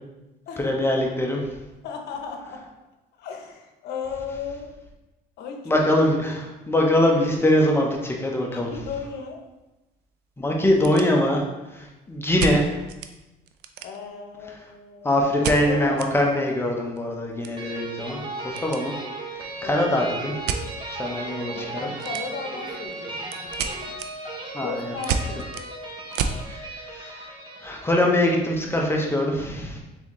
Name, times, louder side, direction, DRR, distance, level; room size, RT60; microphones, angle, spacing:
voice 1, 0.6-1.5 5.7-8.7 10.4-11.4 11.7-12.8 15.0-18.9 19.6-20.3 20.9-21.9 24.5-24.9 26.4-27.2 27.6-29.8, left 1 dB, 15° left, 0 dB, 0.7 m, -23 dB
voice 2, 1.8-2.6 3.2-4.7 5.4-5.8 8.5-9.4 13.8-16.0 19.6-19.9 21.5-23.8 24.6-25.5, left 5 dB, 75° left, 3 dB, 0.7 m, -35 dB
sound 1, 8.3-8.5 8.9-9.0 9.6-9.7 9.9-10.0 10.5-11.6 12.4-13.1 13.5-14.2 15.4-16.1 16.5-16.6 16.8-18.8 19.1-19.4 20.4-20.7 22.0-22.5 22.9-26.4, right 6 dB, 75° right, 0.4 m, -31 dB
sound 2, 17.6-28.3, right 2 dB, 30° right, 0.9 m, -36 dB
4.0 x 3.6 x 3.0 m, 1.0 s
cardioid pair, 110°, 17 cm